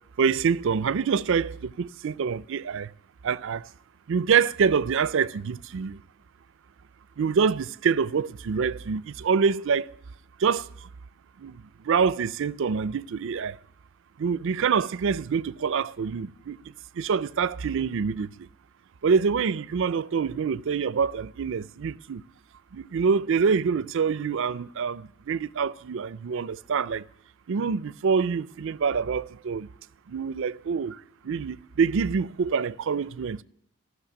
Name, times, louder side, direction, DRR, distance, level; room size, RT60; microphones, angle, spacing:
voice 1, 0.2-2.9 3.2-3.7 4.1-6.0 7.2-9.9 10.4-10.7 11.4-13.6 14.2-16.6 16.9-18.5 19.0-22.2 22.7-27.1 27.5-29.7 30.1-31.0 31.2-33.4, right 6 dB, 60° right, 0.4 m, -26 dB
15.0 x 6.4 x 9.9 m
head